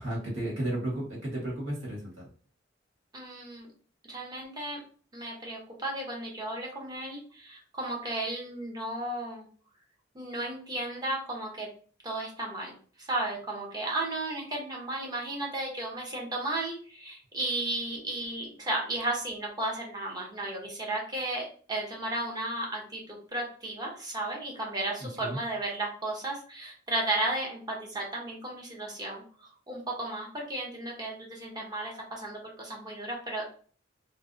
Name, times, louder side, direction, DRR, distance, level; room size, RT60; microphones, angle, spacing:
voice 1, 0.0-2.3 25.0-25.4, right 1 dB, 85° right, -4 dB, 1.2 m, -33 dB
voice 2, 3.1-3.7 4.1-4.8 5.1-9.5 10.1-11.7 12.0-33.5, right 2 dB, 20° right, -2 dB, 0.6 m, -34 dB
2.6 x 2.0 x 2.4 m, 0.43 s
head